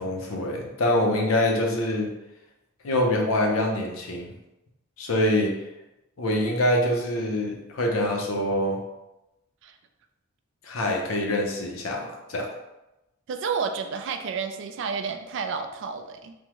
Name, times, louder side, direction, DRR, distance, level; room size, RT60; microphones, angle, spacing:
voice 1, 0.0-2.1 2.8-4.3 5.0-5.5 6.2-8.8 10.6-12.5, left 1 dB, 80° left, 1 dB, 0.6 m, -25 dB
voice 2, 13.3-16.3, right 5 dB, 60° right, 6 dB, 0.3 m, -30 dB
3.4 x 2.1 x 2.9 m, 0.96 s
head